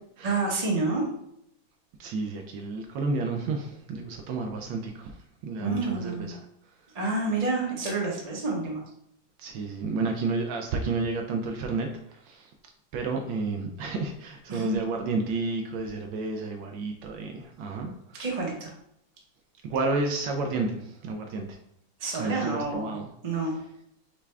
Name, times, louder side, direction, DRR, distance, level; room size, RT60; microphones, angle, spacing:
voice 1, 0.2-1.1 5.6-6.3 6.9-8.8 14.5-14.8 18.2-18.7 22.0-23.0 23.2-23.6, right 3 dB, 35° right, -3 dB, 0.6 m, -28 dB
voice 2, 2.0-5.1 5.4-6.4 9.4-12.5 12.9-18.2 19.6-21.6 22.2-23.1, right 3 dB, 80° right, 3 dB, 1.3 m, -31 dB
5.8 x 2.3 x 3.3 m, 0.73 s
omnidirectional pair, 2.1 m